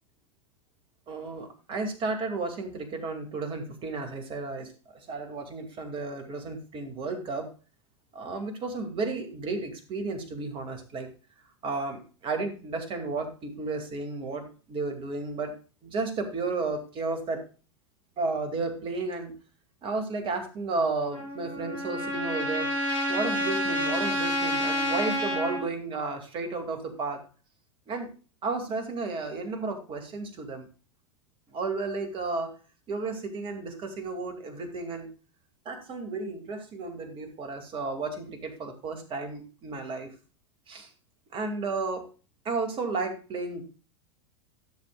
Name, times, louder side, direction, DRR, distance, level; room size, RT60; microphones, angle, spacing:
voice 1, 1.1-7.5 8.1-11.1 11.6-15.5 15.8-17.4 18.2-19.3 19.8-22.7 23.1-27.2 27.9-28.1 28.4-30.7 31.5-32.5 32.9-35.1 35.7-40.1 40.7-40.9 41.3-42.0 42.4-43.6, right 3 dB, 30° right, 5 dB, 2.2 m, -33 dB
Trumpet, 21.1-25.6, equal, 80° left, 5.6 m, -29 dB
14.0 x 7.0 x 2.3 m, 0.36 s
figure-of-eight pair, 90°, 17 cm